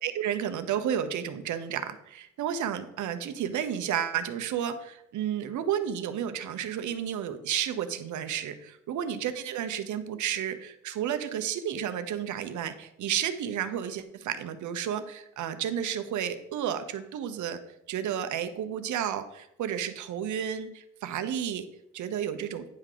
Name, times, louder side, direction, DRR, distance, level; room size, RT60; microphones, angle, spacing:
voice 1, 0.0-17.6 17.9-21.7 21.9-22.6, right 9 dB, 75° right, 9 dB, 0.9 m, -32 dB
9.7 x 3.7 x 6.7 m, 0.80 s
cardioid pair, 90°, 30 cm